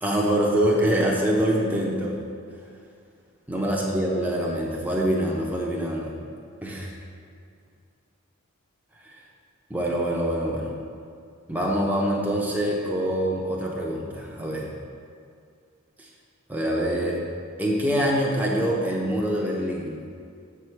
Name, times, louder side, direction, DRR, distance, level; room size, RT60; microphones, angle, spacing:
voice 1, 0.0-2.2 3.5-6.1 6.6-6.9 9.0-9.2 9.7-10.7 11.5-14.7 16.0-16.1 16.5-17.2 17.6-20.0, equal, 10° right, -2 dB, 0.8 m, -25 dB
7.4 x 4.8 x 5.9 m, 2.3 s
head